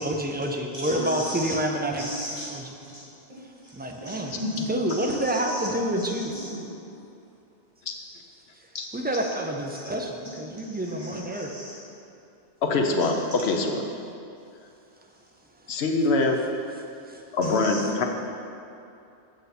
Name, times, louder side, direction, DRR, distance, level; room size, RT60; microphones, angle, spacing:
voice 1, 0.0-2.1 2.5-2.7 3.7-4.4 4.7-6.3 8.9-11.5 17.1-17.2, right 1 dB, 15° right, 2 dB, 0.4 m, -28 dB
voice 2, 0.8-1.5 2.0-2.5 2.8-3.0 3.3-3.7 4.0-5.7 6.0-6.6 8.8-8.9 9.2-9.3 9.7-9.8 10.6-11.7 13.0-13.2 17.4-17.8, equal, 30° right, -10 dB, 2.2 m, -36 dB
voice 3, 12.6-13.8 15.7-16.4 17.3-18.1, left 3 dB, 85° left, 3 dB, 1.0 m, -24 dB
7.9 x 6.6 x 4.2 m, 2.6 s
omnidirectional pair, 1.0 m